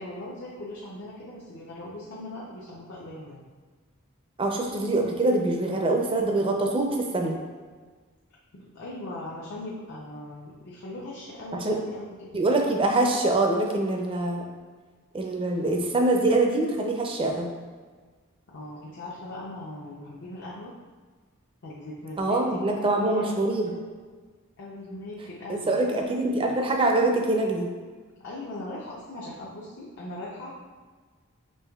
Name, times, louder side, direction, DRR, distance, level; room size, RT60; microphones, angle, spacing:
voice 1, 0.0-3.5 8.5-12.4 18.5-20.7 21.6-23.4 23.7-23.8 24.6-26.1 28.2-30.5, left 1 dB, 60° left, -6 dB, 0.6 m, -39 dB
voice 2, 4.4-7.4 11.6-11.8 12.3-14.4 15.1-17.5 22.2-23.7 25.5-27.7, right 2 dB, 25° right, 2 dB, 0.4 m, -24 dB
5.4 x 3.0 x 2.3 m, 1.4 s
head